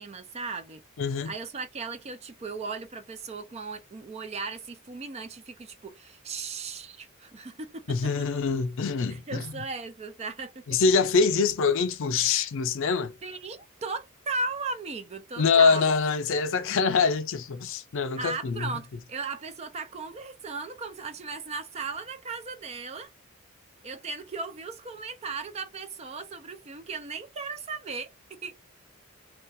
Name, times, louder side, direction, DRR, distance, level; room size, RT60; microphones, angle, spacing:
voice 1, 0.0-0.8 1.3-8.1 9.1-10.8 13.2-15.9 18.2-23.1 23.8-28.5, right 4 dB, 30° right, 0.4 m, -37 dB
voice 2, 1.0-1.3 7.9-9.5 10.7-13.2 15.4-18.7, left 5 dB, 65° left, 0.5 m, -24 dB
2.4 x 2.2 x 2.6 m
head